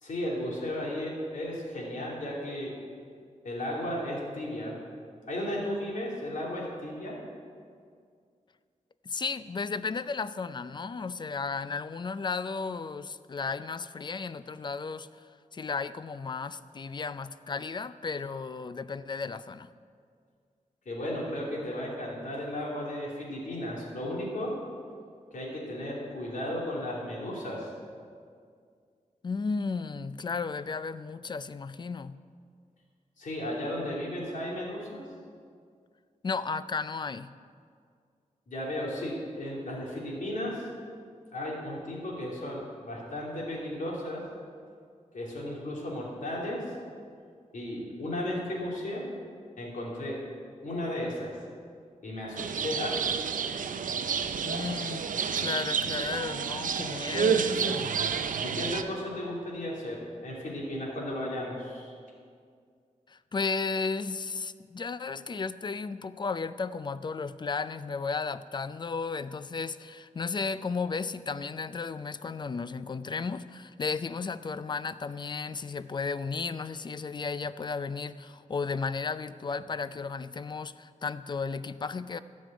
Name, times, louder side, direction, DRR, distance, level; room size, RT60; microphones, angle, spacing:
voice 1, 0.0-2.7 3.4-4.7 5.3-7.2 20.8-24.6 25.3-27.7 33.2-35.0 38.5-40.7 41.3-44.2 45.1-46.6 47.5-49.1 49.6-50.2 50.6-51.4 52.0-53.2 58.4-61.9, left 1 dB, 75° left, -3 dB, 2.8 m, -34 dB
voice 2, 9.0-19.7 29.2-32.2 36.2-37.3 54.4-55.0 55.4-58.0 63.1-82.2, left 4 dB, 35° left, 14 dB, 0.4 m, -34 dB
sound 1, 52.4-58.8, right 6 dB, 85° right, 0.6 m, -30 dB
12.5 x 5.4 x 8.5 m, 2.2 s
wide cardioid pair, 90°, 13 cm